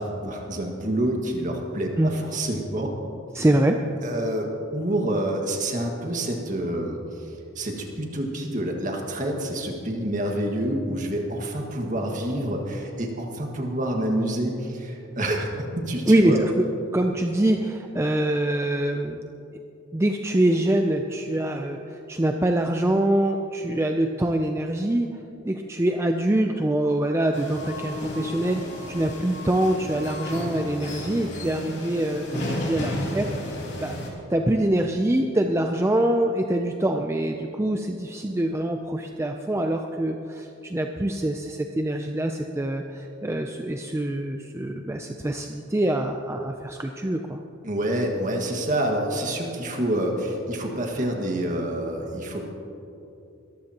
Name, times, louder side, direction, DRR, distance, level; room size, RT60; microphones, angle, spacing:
voice 1, 0.0-3.0 4.0-16.4 47.6-52.4, right 1 dB, 40° right, 1 dB, 1.8 m, -28 dB
voice 2, 3.3-3.8 16.1-16.6 16.9-19.2 19.9-21.8 22.1-25.2 25.4-28.6 28.9-33.3 33.8-33.9 34.3-47.4, right 1 dB, 15° right, 4 dB, 0.4 m, -24 dB
sound 1, 27.3-34.1, left 1 dB, 55° left, 3.1 m, -33 dB
21.5 x 14.0 x 2.9 m, 2.9 s
head